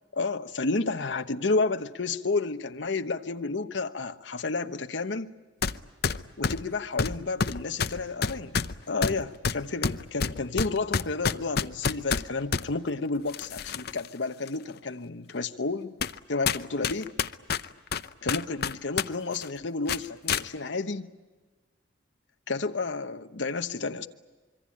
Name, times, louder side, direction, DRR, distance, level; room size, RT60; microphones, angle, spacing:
voice 1, 0.1-5.3 6.4-15.9 16.3-17.1 18.2-21.1 22.5-24.1, left 3 dB, 75° left, 1.1 m, -31 dB
sound 1, 5.6-5.8 6.0-12.7 13.3-14.1 14.5-14.6 15.3-15.4 16.0-16.2 16.5-19.1 19.3-19.5 19.9-20.4, left 5 dB, 60° left, 0.7 m, -28 dB
26.0 x 24.0 x 8.6 m
head